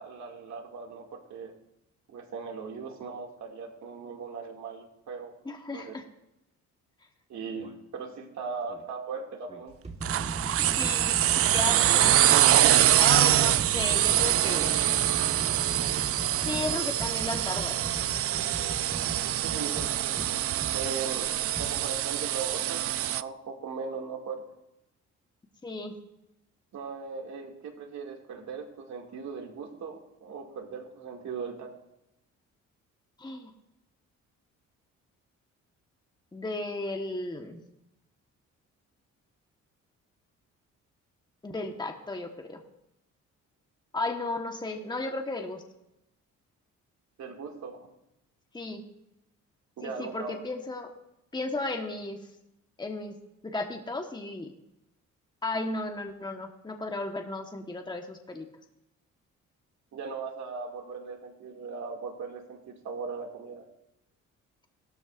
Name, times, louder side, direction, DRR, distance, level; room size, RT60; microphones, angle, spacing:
voice 1, 0.0-1.5 2.1-5.4 5.7-5.9 7.3-9.7 12.8-13.0 19.4-20.4 20.7-24.4 26.7-31.7 47.2-47.9 49.8-50.4 59.9-63.6, right 5 dB, 65° right, 2 dB, 2.4 m, -39 dB
voice 2, 5.4-6.0 10.8-12.2 13.0-14.8 16.4-17.8 25.6-25.9 33.2-33.5 36.3-37.6 41.4-42.6 43.9-45.6 48.5-48.8 49.8-50.9 51.3-52.2 52.8-53.2 53.4-54.5 55.4-58.5, left 2 dB, 15° left, 3 dB, 1.3 m, -34 dB
sound 1, 7.5-7.8 8.7-8.8 9.5-20.8 21.6-21.7, right 2 dB, 20° right, 1.6 m, -38 dB
sound 2, 10.0-23.2, right 12 dB, 50° right, 0.4 m, -25 dB
16.5 x 13.0 x 2.6 m, 0.89 s
cardioid pair, 90°, 30 cm